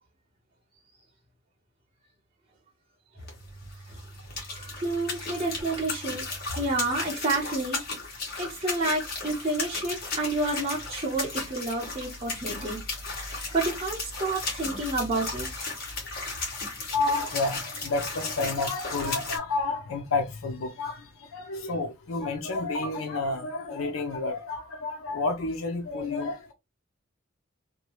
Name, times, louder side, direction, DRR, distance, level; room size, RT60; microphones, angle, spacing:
sound 1, 3.2-19.4, left 3 dB, 45° left, 1.2 m, -35 dB
voice 1, 4.6-6.2 6.6-7.8 8.4-12.8 13.5-15.7, right 2 dB, 25° right, 0.8 m, -29 dB
voice 2, 16.9-26.5, left 3 dB, 90° left, 0.6 m, -30 dB
2.8 x 2.2 x 3.0 m
head